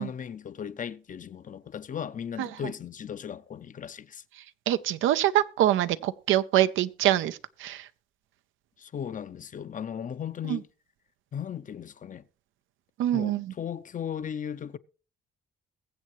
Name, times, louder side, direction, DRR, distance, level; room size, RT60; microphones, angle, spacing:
voice 1, 0.0-4.2 8.8-10.7 11.3-12.2 13.1-14.8, left 8 dB, 40° left, 0.6 m, -37 dB
voice 2, 4.7-7.9 10.5-10.6 13.0-13.5, right 13 dB, 85° right, 0.6 m, -25 dB
22.0 x 7.4 x 3.1 m
cardioid pair, 90°, 20 cm